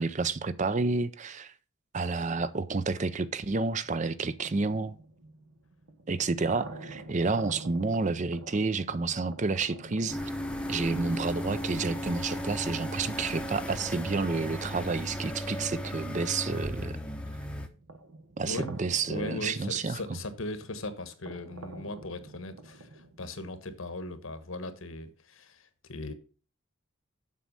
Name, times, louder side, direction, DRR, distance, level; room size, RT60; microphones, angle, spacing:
voice 1, 0.0-1.5 1.9-5.0 6.1-10.2 10.7-17.0 18.4-20.0, right 3 dB, 35° right, 0.5 m, -30 dB
sound 1, 3.8-15.1 15.6-23.3, right 2 dB, 80° right, 1.0 m, -48 dB
sound 2, 10.1-17.7, equal, 5° left, 0.7 m, -35 dB
voice 2, 18.4-18.7 19.1-26.1, left 2 dB, 75° left, 1.2 m, -38 dB
7.6 x 6.1 x 5.4 m
head